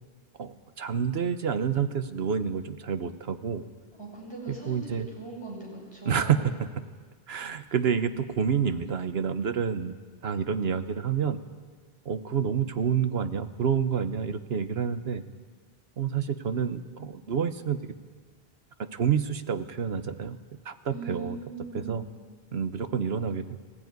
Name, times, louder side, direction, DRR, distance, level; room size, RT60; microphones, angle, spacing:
voice 1, 0.4-3.6 4.5-5.1 6.0-6.7 7.3-9.9 10.2-11.4 12.0-15.2 16.0-17.8 18.8-20.4 20.6-21.4 21.7-22.0 22.5-23.6, right 7 dB, 80° right, 11 dB, 1.2 m, -28 dB
voice 2, 4.0-6.4 20.9-22.0, right 3 dB, 25° right, -2 dB, 6.5 m, -40 dB
19.0 x 15.0 x 9.4 m, 1.5 s
omnidirectional pair, 1.0 m